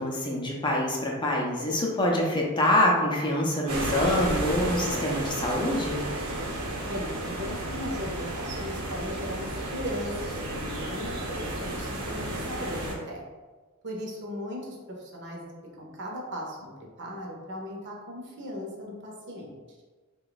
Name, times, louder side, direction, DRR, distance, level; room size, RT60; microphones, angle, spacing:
voice 1, 0.0-6.0, left 1 dB, 20° left, -2 dB, 0.5 m, -25 dB
sound 1, 3.7-12.9, right 1 dB, 75° right, 1.0 m, -32 dB
voice 2, 6.8-13.2 13.8-15.5 15.8-19.6, equal, 55° right, -1 dB, 0.8 m, -37 dB
3.7 x 2.3 x 3.9 m, 1.3 s
head